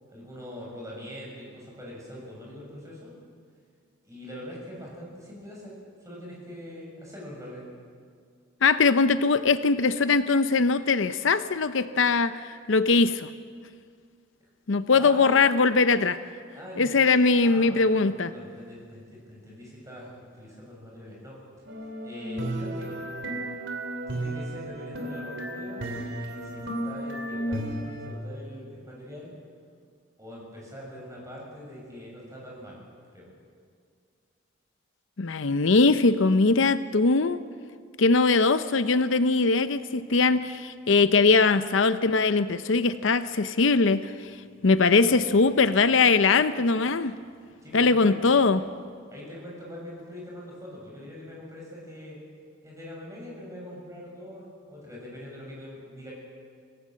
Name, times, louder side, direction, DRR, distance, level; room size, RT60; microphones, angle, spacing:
voice 1, 0.1-3.2 4.0-7.7 15.0-15.4 16.5-21.4 22.0-23.0 24.1-29.3 30.2-32.8 33.1-33.3 47.6-48.2 49.1-52.2 52.6-56.1, left 1 dB, 15° right, -3 dB, 7.0 m, -43 dB
voice 2, 8.6-13.3 14.7-16.2 16.8-18.3 35.2-37.4 38.0-44.3 44.6-47.2 47.7-48.6, left 4 dB, 75° left, 12 dB, 0.7 m, -21 dB
sound 1, 21.7-28.1, right 1 dB, 65° right, 3.2 m, -33 dB
25.5 x 17.0 x 7.7 m, 2.1 s
head